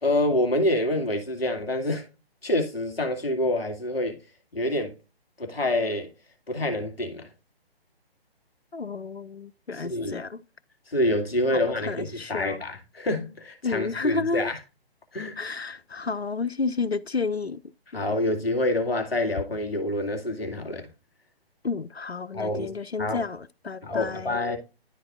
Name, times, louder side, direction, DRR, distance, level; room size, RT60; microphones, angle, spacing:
voice 1, 0.0-2.0 2.4-4.2 4.5-4.9 5.4-6.1 6.5-7.3 9.7-10.2 10.9-14.6 15.1-15.4 17.9-20.9 22.3-22.7 23.0-23.2 23.8-24.6, left 1 dB, 70° left, 2.5 m, -27 dB
voice 2, 8.7-10.4 11.5-12.6 13.6-14.5 15.4-17.6 21.6-24.4, left 4 dB, 85° left, 0.7 m, -31 dB
12.5 x 4.3 x 2.5 m
figure-of-eight pair, 140°, 31 cm